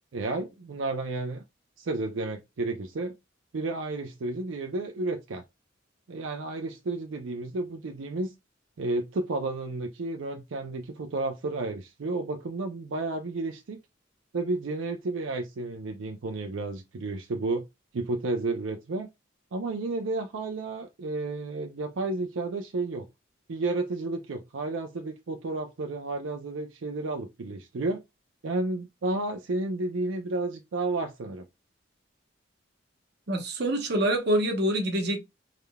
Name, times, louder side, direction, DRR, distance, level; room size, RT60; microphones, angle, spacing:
voice 1, 0.1-1.4 1.8-3.1 3.5-5.4 6.1-8.3 8.8-13.8 14.3-17.6 17.9-19.1 19.5-23.1 23.5-28.0 28.4-31.4, right 2 dB, 85° right, 0.5 m, -32 dB
voice 2, 33.3-35.2, right 1 dB, 60° right, 0.9 m, -26 dB
3.6 x 3.3 x 2.2 m
head